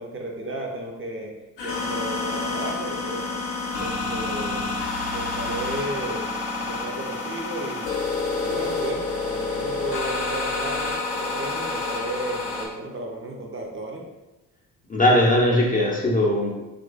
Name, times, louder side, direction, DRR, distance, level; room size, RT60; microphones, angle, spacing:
voice 1, 0.0-1.3 1.6-3.3 3.8-4.7 5.1-6.3 6.6-7.9 8.4-14.0, right 1 dB, 25° right, 0 dB, 0.6 m, -33 dB
sound 1, 1.6-12.7, left 3 dB, 75° left, 0.7 m, -28 dB
voice 2, 14.9-16.5, left 1 dB, 20° left, -3 dB, 0.5 m, -19 dB
2.9 x 2.5 x 2.4 m, 1.0 s
hypercardioid pair, 45°, 47 cm